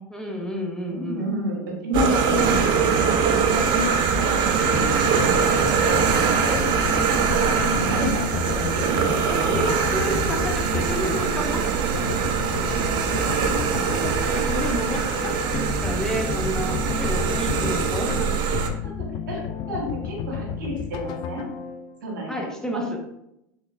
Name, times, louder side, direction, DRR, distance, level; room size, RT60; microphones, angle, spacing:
voice 1, 0.1-1.3 9.3-11.6 14.2-18.3 22.3-23.0, right 1 dB, 5° left, 1 dB, 0.6 m, -30 dB
voice 2, 1.0-6.0 6.4-9.2 18.8-18.9 19.3-19.4 19.7-21.4 22.0-22.4 22.7-22.9, equal, 75° right, -1 dB, 1.2 m, -30 dB
sound 1, 1.9-18.7, right 6 dB, 45° right, 0.5 m, -23 dB
sound 2, 4.6-22.0, left 7 dB, 45° left, 0.4 m, -32 dB
3.6 x 3.2 x 2.4 m, 0.83 s
hypercardioid pair, 90°, 10 cm